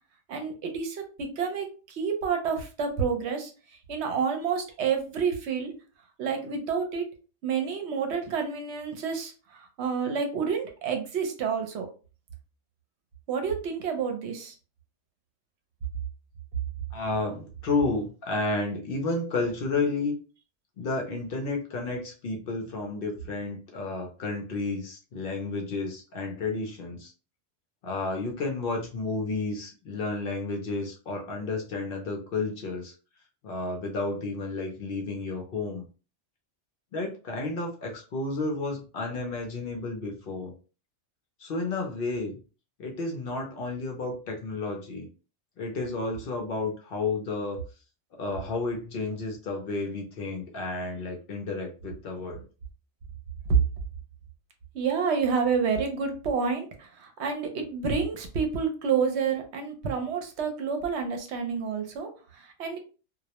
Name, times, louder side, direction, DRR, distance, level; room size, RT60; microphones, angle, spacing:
voice 1, 0.3-3.5 3.9-5.7 6.2-7.0 7.4-11.9 13.3-14.5 53.5-53.6 54.7-62.8, right 6 dB, 70° right, 5 dB, 0.9 m, -29 dB
voice 2, 16.9-20.1 20.8-27.1 27.8-32.9 33.4-35.8 36.9-40.5 41.4-42.4 42.8-45.1 45.6-47.6 48.2-52.4, left 3 dB, 60° left, 1 dB, 0.6 m, -31 dB
2.2 x 2.0 x 2.8 m, 0.35 s
omnidirectional pair, 1.2 m